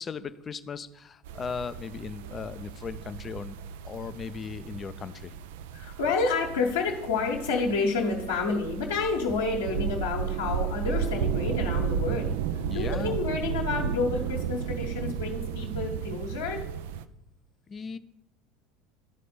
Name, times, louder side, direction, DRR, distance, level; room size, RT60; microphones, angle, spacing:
voice 1, 0.0-3.6 3.8-5.3 12.7-13.2 17.7-18.0, left 5 dB, 30° left, 12 dB, 0.5 m, -37 dB
sound 1, 1.2-17.0, right 8 dB, 65° right, 0.4 m, -33 dB
voice 2, 5.7-16.6, left 4 dB, 75° left, -3 dB, 1.3 m, -29 dB
11.5 x 4.2 x 6.7 m, 0.87 s
figure-of-eight pair, 70°, 0 cm